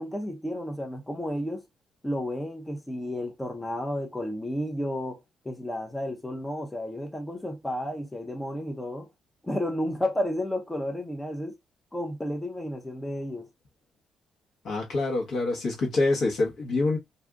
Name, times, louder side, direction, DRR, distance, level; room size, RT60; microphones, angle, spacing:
voice 1, 0.0-1.6 2.0-5.2 5.4-9.1 9.4-11.5 11.9-13.5, left 1 dB, 10° left, 0.6 m, -32 dB
voice 2, 14.6-17.0, left 3 dB, 65° left, 1.1 m, -26 dB
2.6 x 2.3 x 3.6 m
cardioid pair, 90°, 0 cm